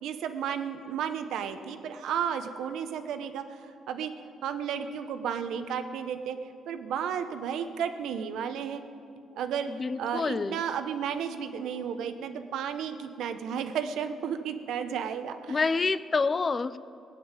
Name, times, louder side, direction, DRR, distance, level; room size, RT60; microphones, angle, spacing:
voice 1, 0.0-4.1 4.4-6.4 6.7-8.8 9.4-9.7 10.0-15.8, right 8 dB, 80° right, 8 dB, 1.0 m, -33 dB
voice 2, 9.7-10.6 15.5-16.8, left 4 dB, 35° left, 16 dB, 0.5 m, -27 dB
18.5 x 7.8 x 9.0 m, 2.5 s
cardioid pair, 90°, 0 cm